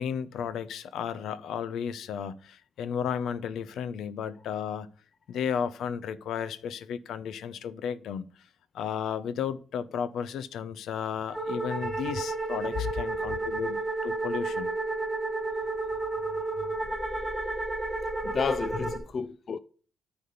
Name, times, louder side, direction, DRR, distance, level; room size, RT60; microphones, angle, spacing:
voice 1, 0.0-4.9 5.3-8.3 8.7-14.7, left 8 dB, 80° left, 0.7 m, -33 dB
sound 1, 11.3-19.0, right 2 dB, 5° left, 1.5 m, -31 dB
voice 2, 16.4-16.8 17.1-17.3 18.2-19.6, left 6 dB, 45° left, 0.5 m, -33 dB
9.6 x 3.5 x 6.8 m
cardioid pair, 105°, 0 cm